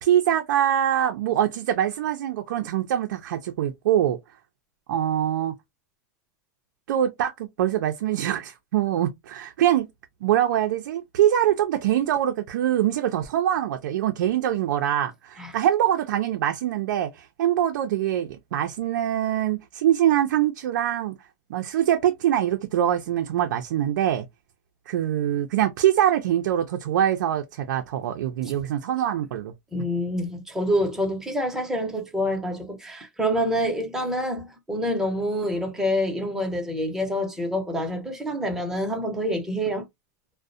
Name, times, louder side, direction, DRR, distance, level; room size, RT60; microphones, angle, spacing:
voice 1, 0.0-4.2 4.9-5.5 6.9-9.9 10.2-21.2 21.5-24.2 24.9-29.5, right 11 dB, 85° right, 0.4 m, -24 dB
voice 2, 29.7-39.8, equal, 5° right, 0.6 m, -27 dB
2.4 x 2.0 x 2.5 m
supercardioid pair, 150°, 10 cm